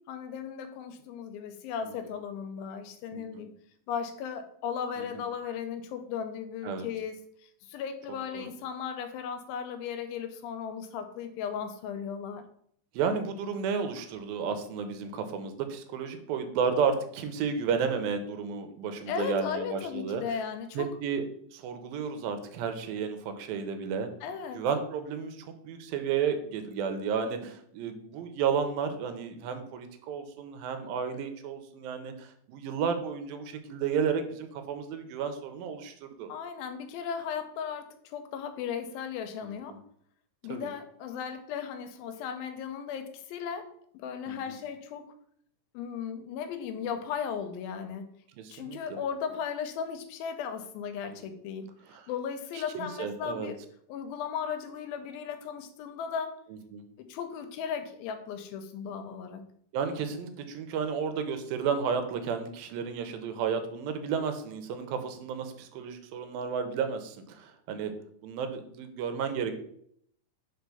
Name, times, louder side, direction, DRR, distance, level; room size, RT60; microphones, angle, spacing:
voice 1, 0.1-3.5 3.9-12.4 19.1-20.9 24.2-24.6 36.3-39.8 40.4-43.7 43.9-45.1 45.7-48.1 48.5-51.7 52.1-53.6 53.9-56.3 57.0-59.4, left 7 dB, 90° left, 8 dB, 2.4 m, -36 dB
voice 2, 3.1-3.4 5.0-5.1 6.6-6.9 8.3-8.5 12.9-20.2 20.8-21.2 21.5-24.1 24.5-36.3 39.4-39.8 40.5-40.7 44.3-44.4 48.4-49.0 51.1-51.2 51.9-52.0 52.6-53.5 56.7-56.8 59.7-67.9 68.2-69.5, right 6 dB, 85° right, 8 dB, 2.4 m, -32 dB
4.8 x 4.6 x 5.4 m, 0.67 s
omnidirectional pair, 4.2 m